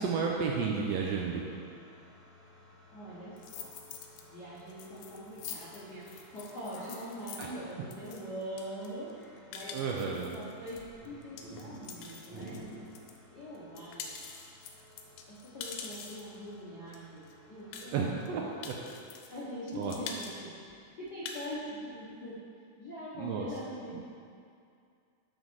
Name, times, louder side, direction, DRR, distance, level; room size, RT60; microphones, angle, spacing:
voice 1, 0.0-1.4 7.4-7.5 9.7-10.3 17.9-18.8 19.7-19.9 23.2-23.5 23.9-24.0, right 5 dB, 80° right, -1 dB, 1.5 m, -32 dB
sound 1, 1.0-19.1, equal, 55° right, 2.0 m, -54 dB
voice 2, 2.9-3.7 4.3-12.6 13.3-14.2 15.3-18.6 19.3-20.5 21.0-22.4 22.8-23.9, equal, 65° left, -9 dB, 1.0 m, -43 dB
sound 2, 3.4-4.2 4.6-13.2 13.5-16.4 16.9-17.0 17.2-17.3 17.7-18.3 18.6-19.4 19.7-20.3 20.7-20.8 21.1-21.5, left 6 dB, 90° left, 2.1 m, -45 dB
7.1 x 3.9 x 6.1 m, 2.4 s
omnidirectional pair, 3.4 m